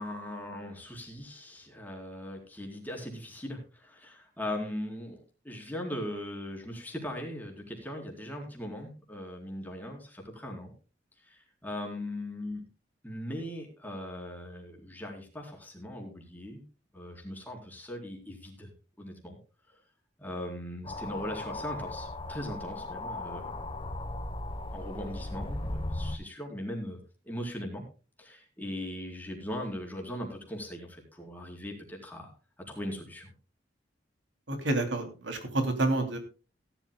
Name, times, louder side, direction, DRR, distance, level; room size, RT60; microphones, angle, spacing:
voice 1, 0.0-10.7 11.2-12.6 13.0-16.6 16.9-18.7 19.0-19.4 20.2-23.7 24.7-27.0 27.2-27.8 28.2-32.3 32.7-33.3, left 1 dB, 10° left, 0 dB, 4.0 m, -39 dB
sound 1, 20.8-26.2, left 2 dB, 30° left, 1.1 m, -37 dB
voice 2, 34.5-36.2, right 2 dB, 80° right, 6 dB, 3.0 m, -29 dB
17.5 x 12.5 x 2.3 m, 0.34 s
head